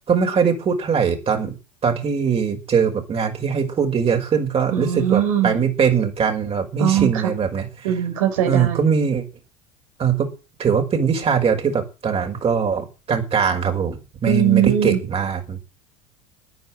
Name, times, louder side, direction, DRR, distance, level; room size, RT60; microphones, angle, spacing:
voice 1, 0.1-1.5 1.8-7.9 8.4-9.2 10.0-10.3 10.6-15.6, right 6 dB, 35° right, 3 dB, 5.8 m, -21 dB
voice 2, 4.7-5.6 6.8-7.1 7.8-8.8 14.3-15.0, right 10 dB, 70° right, 6 dB, 4.7 m, -20 dB
13.5 x 10.0 x 7.9 m, 0.31 s
hypercardioid pair, 75°, 18 cm